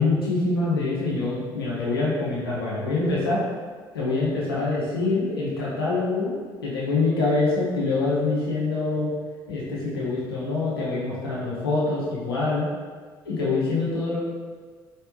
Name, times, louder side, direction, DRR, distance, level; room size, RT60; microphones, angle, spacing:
voice 1, 0.0-3.4 3.9-6.4 6.6-9.1 9.5-12.7 13.2-14.2, left 3 dB, 90° left, -7 dB, 0.9 m, -25 dB
4.6 x 3.3 x 3.0 m, 1.5 s
hypercardioid pair, 55°, 12 cm